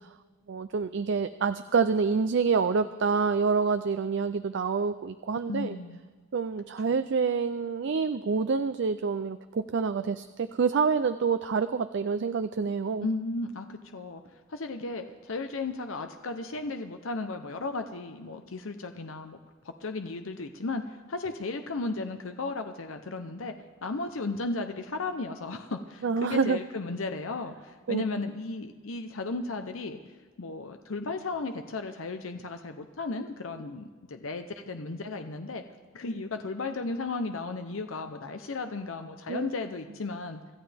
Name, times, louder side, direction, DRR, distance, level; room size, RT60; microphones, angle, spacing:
voice 1, 0.5-5.8 6.3-13.1 26.0-26.6 27.9-28.0 39.3-39.5, right 5 dB, 60° right, 11 dB, 0.4 m, -27 dB
voice 2, 5.5-6.0 13.0-14.2 14.5-19.4 19.6-23.5 23.8-30.0 30.4-35.6 35.9-40.4, left 3 dB, 85° left, 7 dB, 0.8 m, -35 dB
25.5 x 14.0 x 3.5 m, 1.4 s
head